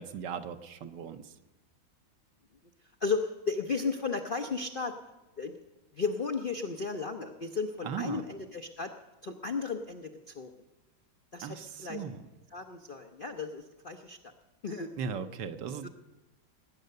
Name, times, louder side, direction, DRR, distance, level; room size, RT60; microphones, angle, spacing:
voice 1, 0.0-1.3 7.8-8.2 11.4-12.2 15.0-15.9, right 7 dB, 75° right, 9 dB, 1.5 m, -38 dB
voice 2, 3.0-4.9 5.4-5.6 5.9-8.9 9.2-10.5 11.3-12.0 12.5-14.3 14.6-14.9 15.8-15.9, left 4 dB, 55° left, 5 dB, 0.6 m, -34 dB
19.0 x 9.3 x 6.6 m, 1.1 s
omnidirectional pair, 2.0 m